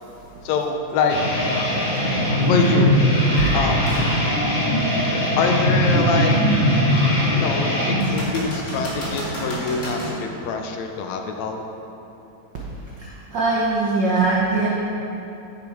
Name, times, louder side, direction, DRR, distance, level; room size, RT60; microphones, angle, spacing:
voice 1, 0.4-1.2 2.5-2.9 3.5-3.9 5.4-6.4 6.7-6.8 7.3-11.6, left 4 dB, 75° left, 4 dB, 1.8 m, -24 dB
sound 1, 1.1-8.0, equal, 55° left, 3.5 m, -20 dB
sound 2, 3.9-4.1 4.7-4.8 8.0-10.2 13.9-14.0, equal, 30° left, 1.6 m, -31 dB
voice 2, 13.0-14.7, right 3 dB, 90° right, -4 dB, 0.9 m, -21 dB
9.7 x 7.0 x 4.7 m, 3.0 s
omnidirectional pair, 3.4 m